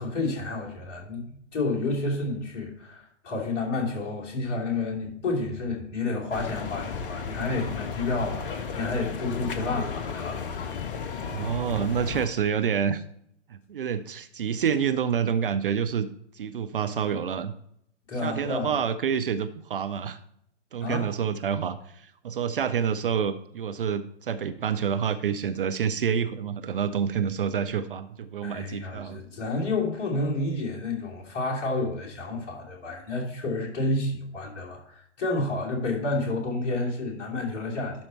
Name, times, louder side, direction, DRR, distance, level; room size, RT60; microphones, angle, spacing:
voice 1, 0.0-10.6 18.1-18.7 20.8-21.1 28.4-38.0, left 2 dB, 30° left, -3 dB, 2.8 m, -30 dB
sound 1, 6.3-12.3, left 6 dB, 50° left, 1.0 m, -34 dB
voice 2, 11.3-13.0 13.5-16.1 16.3-17.5 18.2-20.2 20.7-29.2, right 7 dB, 50° right, 11 dB, 0.5 m, -28 dB
11.5 x 4.4 x 4.3 m, 0.71 s
figure-of-eight pair, 115°, 35 cm